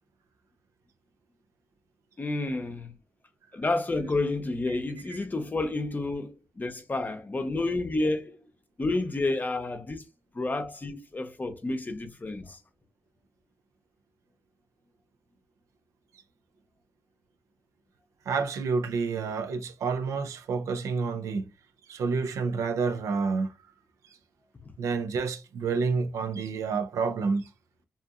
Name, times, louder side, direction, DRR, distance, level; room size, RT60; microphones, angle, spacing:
voice 1, 2.2-2.9 3.5-8.4 8.8-10.0 10.3-12.6, left 2 dB, 35° left, 0.6 m, -30 dB
voice 2, 18.3-21.5 21.9-23.5 24.8-27.5, right 4 dB, 80° right, 0.4 m, -29 dB
2.6 x 2.4 x 2.4 m
supercardioid pair, 45°, 5 cm